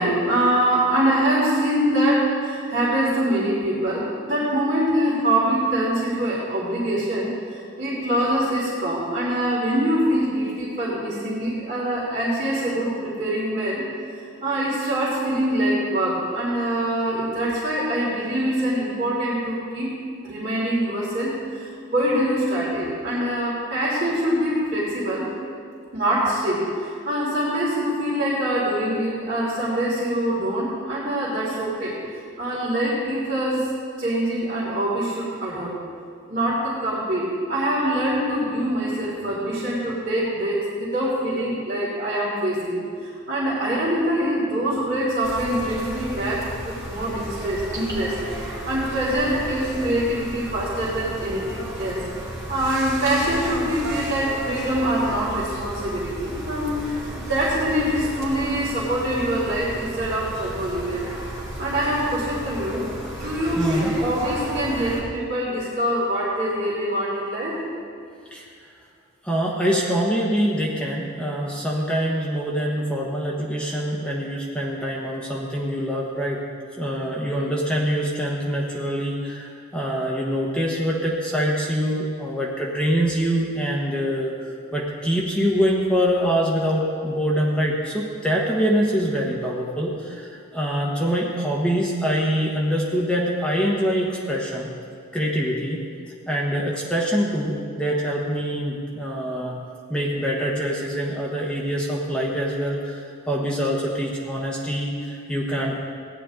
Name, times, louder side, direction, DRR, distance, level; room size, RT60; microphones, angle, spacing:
voice 1, 0.0-13.8 14.4-19.9 20.2-25.3 25.9-31.9 32.4-33.7 34.0-35.7 36.3-48.1 48.4-52.0 52.5-61.0 61.6-62.9 63.2-67.6, right 1 dB, 40° right, -11 dB, 3.3 m, -24 dB
sound 1, 45.2-65.0, right 1 dB, 15° right, 3.3 m, -34 dB
voice 2, 63.6-63.9 68.3-68.5 69.2-76.4 76.8-84.3 84.7-94.7 95.1-95.8 96.3-99.6 99.9-105.8, equal, 5° left, -4 dB, 1.2 m, -24 dB
17.0 x 10.5 x 3.8 m, 2.3 s
head